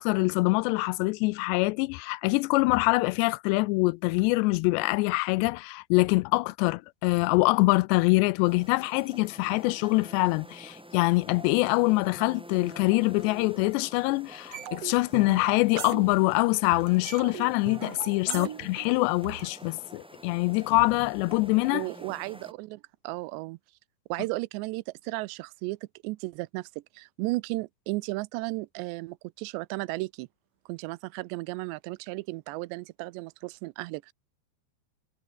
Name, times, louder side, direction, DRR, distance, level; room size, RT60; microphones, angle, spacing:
voice 1, 0.0-21.9, left 23 dB, 85° left, 2.7 m, -24 dB
sound 1, 8.4-22.5, equal, ahead, 2.1 m, -47 dB
sound 2, 14.5-16.5 16.7-19.5, right 10 dB, 65° right, 1.6 m, -39 dB
voice 2, 21.7-23.6 24.1-25.8 26.0-26.7 26.9-30.3 30.7-34.1, right 22 dB, 85° right, 2.8 m, -34 dB
omnidirectional pair, 5.0 m